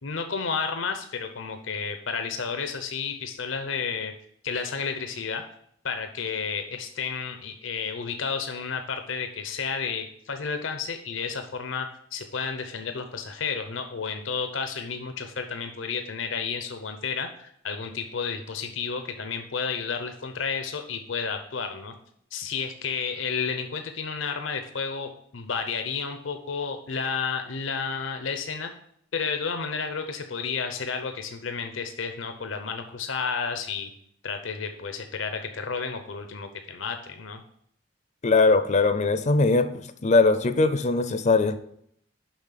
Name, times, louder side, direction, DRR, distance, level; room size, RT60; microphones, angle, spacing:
voice 1, 0.0-4.1 4.4-5.4 5.8-11.9 12.1-21.9 22.3-28.7 29.1-33.9 34.2-37.4, left 5 dB, 85° left, 7 dB, 0.8 m, -31 dB
voice 2, 38.2-41.5, left 3 dB, 40° left, 11 dB, 0.5 m, -21 dB
7.3 x 5.6 x 5.7 m, 0.68 s
head